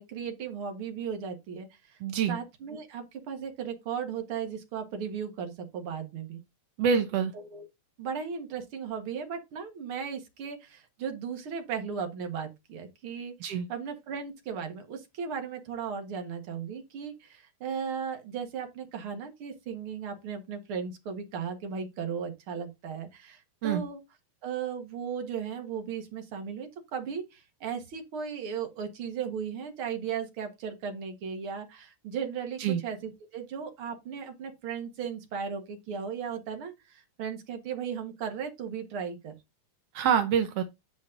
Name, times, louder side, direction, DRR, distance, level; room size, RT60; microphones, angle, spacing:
voice 1, 0.0-2.0 2.3-6.4 7.3-7.7 8.0-24.0 24.4-39.3, right 7 dB, 50° right, 2.0 m, -36 dB
voice 2, 2.0-2.4 6.8-7.3 13.4-13.7 23.6-23.8 32.6-32.8 39.9-40.6, right 7 dB, 70° right, 1.5 m, -26 dB
9.3 x 5.2 x 3.8 m
omnidirectional pair, 3.8 m